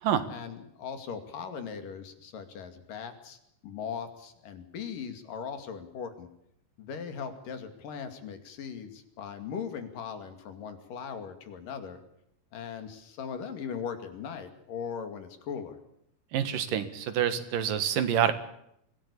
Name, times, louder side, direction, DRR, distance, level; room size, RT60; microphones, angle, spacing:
voice 1, 0.3-3.4 3.6-6.3 6.8-12.0 12.5-15.8, left 7 dB, 90° left, 7 dB, 4.1 m, -39 dB
voice 2, 16.3-18.3, right 9 dB, 90° right, 11 dB, 3.3 m, -27 dB
24.0 x 17.5 x 8.5 m, 0.77 s
omnidirectional pair, 3.7 m